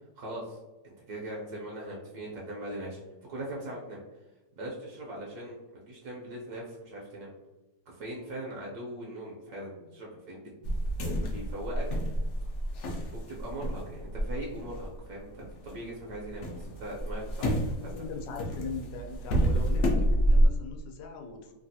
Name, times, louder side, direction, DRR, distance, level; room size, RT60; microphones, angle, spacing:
voice 1, 0.2-0.6 0.8-3.0 3.3-4.0 4.6-5.6 5.8-7.3 7.9-10.5 11.3-11.8 13.1-17.9, right 1 dB, 70° right, -2 dB, 1.1 m, -40 dB
sound 1, 10.6-15.8 16.1-20.5, right 1 dB, 70° left, 0.6 m, -29 dB
voice 2, 17.9-21.5, left 4 dB, 90° left, 2 dB, 1.3 m, -40 dB
3.2 x 2.3 x 2.6 m, 1.1 s
omnidirectional pair, 1.8 m